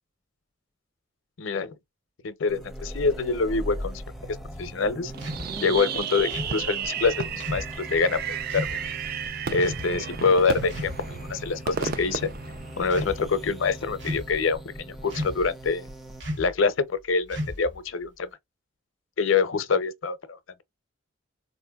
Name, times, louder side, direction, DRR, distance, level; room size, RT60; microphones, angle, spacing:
voice 1, 1.4-1.7 2.2-4.0 4.6-5.1 5.6-8.2 8.5-8.8 9.5-12.3 12.8-15.8 16.4-18.3 19.2-20.4, left 4 dB, 80° left, 0.6 m, -25 dB
sound 1, 2.5-16.2, equal, ahead, 0.5 m, -40 dB
Fireworks, 5.1-13.3, right 7 dB, 50° right, 0.4 m, -33 dB
sound 2, 5.2-5.5 6.3-6.6 7.4-7.7 8.5-8.8 9.6-9.9 10.7-11.2 11.8-12.1 12.8-13.2 14.0-14.4 15.1-15.5 16.2-16.5 17.3-17.8, equal, 65° right, 1.2 m, -33 dB
4.1 x 2.6 x 2.2 m
head